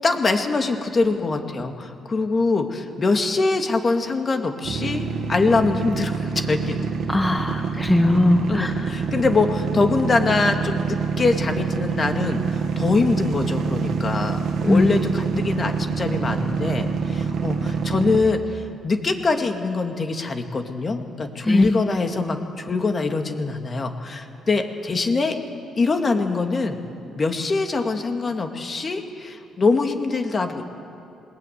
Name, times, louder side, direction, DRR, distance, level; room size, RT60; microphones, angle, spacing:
voice 1, 0.0-6.8 8.5-25.4 25.8-26.8 27.2-30.6, left 3 dB, 35° left, 5 dB, 2.3 m, -23 dB
sound 1, 4.6-18.2, right 5 dB, 70° right, 1.9 m, -26 dB
voice 2, 7.1-8.9 14.7-14.9 21.4-21.7, left 2 dB, 10° left, 4 dB, 1.5 m, -19 dB
20.5 x 20.0 x 9.4 m, 2.7 s
cardioid pair, 90°, 0 cm